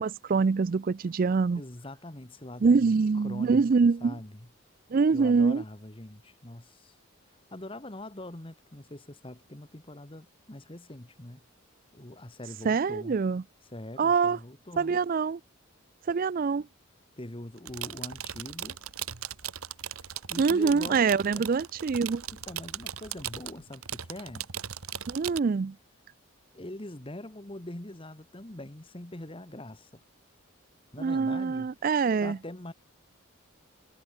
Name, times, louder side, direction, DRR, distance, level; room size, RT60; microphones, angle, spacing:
voice 1, 0.0-1.6 2.6-4.2 4.9-5.6 12.6-13.4 14.0-14.4 14.8-15.4 16.1-16.7 20.4-22.2 25.1-25.7 31.0-32.4, right 5 dB, 40° right, 0.3 m, -25 dB
voice 2, 1.5-3.6 4.0-4.5 5.1-6.9 7.3-11.4 11.9-13.2 13.7-15.0 17.2-18.8 20.0-21.1 21.3-21.5 22.3-24.5 26.5-29.9 30.9-31.7 32.2-32.7, left 1 dB, 25° left, 1.4 m, -43 dB
sound 1, 17.6-25.4, right 10 dB, 85° right, 1.6 m, -38 dB
head